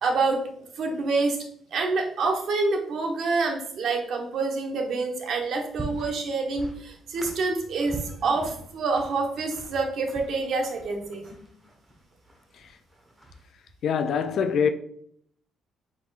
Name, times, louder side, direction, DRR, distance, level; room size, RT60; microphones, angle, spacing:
voice 1, 0.0-0.4 0.8-1.4 1.7-11.3, right 3 dB, 70° right, 1.0 m, -27 dB
sound 1, 5.5-13.5, right 2 dB, 10° right, 1.1 m, -43 dB
voice 2, 13.8-14.7, left 6 dB, 65° left, 0.3 m, -25 dB
4.8 x 4.3 x 2.4 m
cardioid pair, 85°, 0 cm